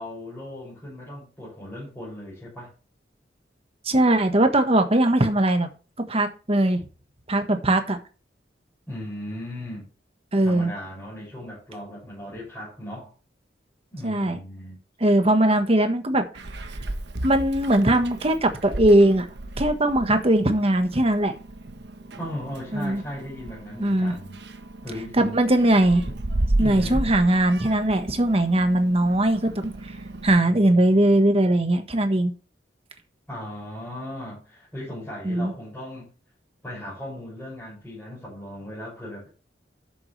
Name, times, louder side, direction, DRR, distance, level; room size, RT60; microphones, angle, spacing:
voice 1, 0.0-2.7 8.9-9.9 10.4-13.1 13.9-14.8 22.2-24.4 24.8-25.4 26.6-27.1 33.3-36.0 36.6-39.3, left 1 dB, 10° left, 6.7 m, -37 dB
voice 2, 3.8-5.7 6.1-6.9 7.3-8.0 10.3-10.7 14.0-14.4 15.0-16.3 17.2-19.3 19.6-21.3 22.7-23.0 23.8-24.2 25.1-26.0 26.6-29.7 30.2-32.3 35.2-35.5, right 1 dB, 35° right, 1.5 m, -20 dB
Meow, 16.3-30.3, right 1 dB, 65° right, 1.1 m, -33 dB
13.0 x 7.1 x 3.4 m
head